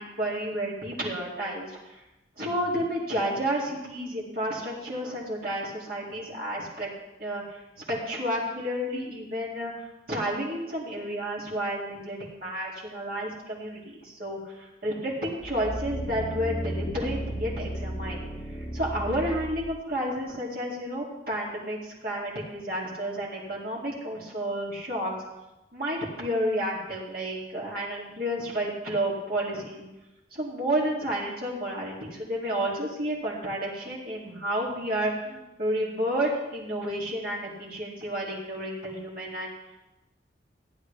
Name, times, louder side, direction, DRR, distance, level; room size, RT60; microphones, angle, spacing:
voice 1, 0.0-2.0 2.4-6.9 7.2-7.6 7.9-18.2 18.5-25.1 25.7-29.9 30.3-39.8, equal, 55° right, -5 dB, 2.5 m, -31 dB
sound 1, 15.4-19.8 20.3-20.4, equal, 30° left, 1.0 m, -34 dB
15.5 x 9.9 x 3.3 m, 1.0 s
head